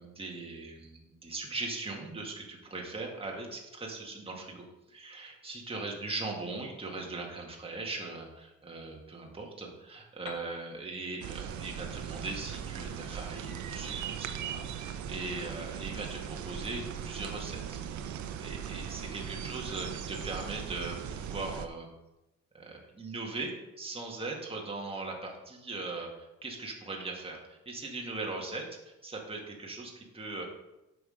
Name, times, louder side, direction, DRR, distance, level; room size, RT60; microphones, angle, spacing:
voice 1, 0.0-17.8 18.4-21.9 22.5-26.1 26.4-30.4, right 3 dB, 20° right, -1 dB, 1.8 m, -40 dB
Piano, 10.3-13.9, left 8 dB, 85° left, 0.8 m, -54 dB
sound 1, 11.2-21.7, right 8 dB, 70° right, 0.8 m, -39 dB
7.6 x 6.0 x 5.0 m, 0.96 s
cardioid pair, 90°, 30 cm